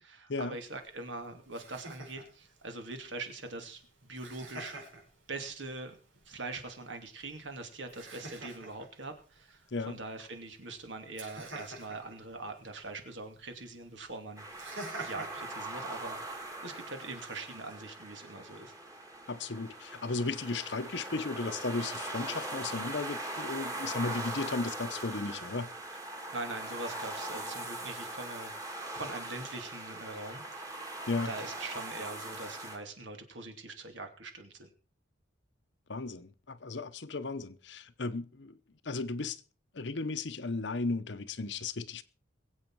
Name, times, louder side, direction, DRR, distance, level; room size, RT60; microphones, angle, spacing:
voice 1, 0.0-4.8 5.3-6.0 6.3-9.6 9.9-14.5 15.0-18.7 26.3-34.7, right 2 dB, 70° right, 2.6 m, -43 dB
Laughter, 0.5-16.5, right 2 dB, 90° right, 5.4 m, -50 dB
sound 1, 14.4-32.8, right 2 dB, 15° right, 2.0 m, -41 dB
voice 2, 19.3-25.7 31.1-31.3 35.9-38.6 38.8-39.4 39.7-42.0, left 3 dB, 65° left, 0.9 m, -35 dB
21.5 x 8.3 x 4.7 m
head